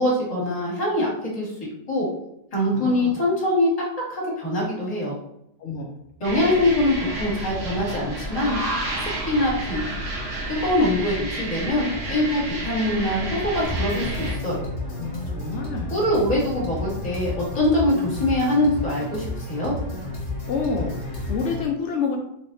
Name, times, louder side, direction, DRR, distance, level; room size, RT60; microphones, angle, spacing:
voice 1, 0.0-2.1 2.5-3.7 4.1-5.1 6.2-8.6 9.3-9.8 10.5-14.7 15.9-19.7, left 1 dB, 25° left, -5 dB, 1.6 m, -23 dB
voice 2, 2.6-3.2 5.6-5.9 15.0-15.9 20.5-22.2, left 5 dB, 65° left, 2 dB, 0.7 m, -28 dB
sound 1, 6.2-14.4, right 1 dB, 55° right, 1.2 m, -30 dB
sound 2, 13.6-21.6, left 2 dB, 40° left, 1.2 m, -31 dB
4.0 x 3.3 x 2.7 m, 0.78 s
omnidirectional pair, 1.6 m